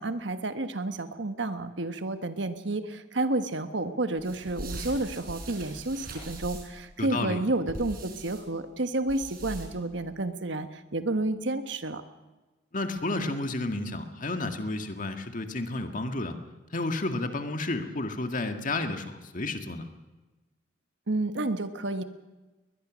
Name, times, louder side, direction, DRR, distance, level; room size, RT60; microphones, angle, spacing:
voice 1, 0.0-12.0 21.1-22.0, right 2 dB, 75° right, 9 dB, 1.3 m, -30 dB
sound 1, 4.2-6.8 7.7-8.4 9.1-9.9, right 1 dB, 50° right, 5.4 m, -41 dB
voice 2, 7.0-7.4 12.7-16.4 16.7-19.9, left 2 dB, 45° left, 6 dB, 1.9 m, -31 dB
21.5 x 21.0 x 6.3 m, 1.2 s
head